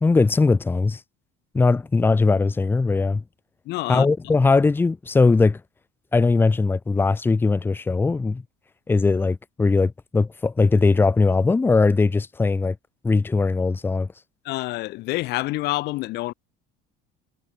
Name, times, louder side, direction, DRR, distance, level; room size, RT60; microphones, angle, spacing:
voice 1, 0.0-1.0 1.5-3.2 3.9-5.6 6.1-8.4 8.9-12.7 13.0-14.1, left 3 dB, 10° left, 1.4 m, -20 dB
voice 2, 3.6-4.1 14.4-16.3, left 19 dB, 50° left, 1.6 m, -27 dB
cardioid pair, 175°, 21 cm